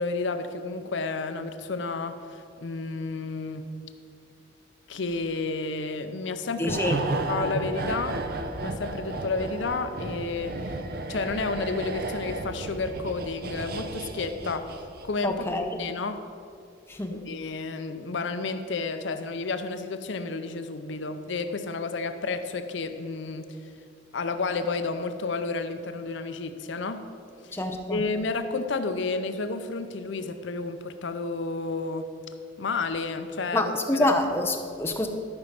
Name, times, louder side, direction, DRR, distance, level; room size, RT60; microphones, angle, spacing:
voice 1, 0.0-3.7 4.9-6.8 7.3-8.2 8.6-10.8 11.1-14.7 15.0-15.4 15.8-16.2 17.1-23.6 24.1-27.1 27.4-32.1 32.6-34.1, left 3 dB, 65° left, 9 dB, 0.6 m, -31 dB
voice 2, 6.6-7.0 15.2-15.7 16.9-17.2 27.5-28.0 33.5-35.1, left 1 dB, 10° left, 4 dB, 0.7 m, -26 dB
sound 1, 6.7-15.2 15.5-15.7, right 2 dB, 50° right, 0.6 m, -33 dB
12.5 x 5.3 x 5.9 m, 2.4 s
head